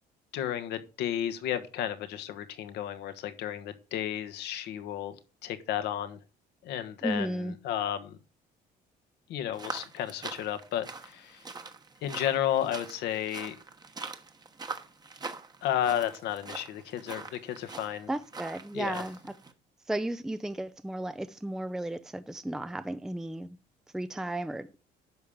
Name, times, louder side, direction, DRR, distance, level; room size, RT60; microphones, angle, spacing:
voice 1, 0.3-5.1 5.4-6.2 6.6-8.2 9.3-11.5 12.0-13.5 15.6-18.1 18.7-19.0, left 10 dB, 80° left, 1.3 m, -32 dB
voice 2, 7.0-7.5 18.1-19.2 19.9-23.6 23.9-24.7, right 1 dB, 5° right, 0.5 m, -34 dB
sound 1, 9.5-19.5, right 4 dB, 25° right, 1.2 m, -43 dB
10.5 x 3.6 x 7.1 m
cardioid pair, 110°, 17 cm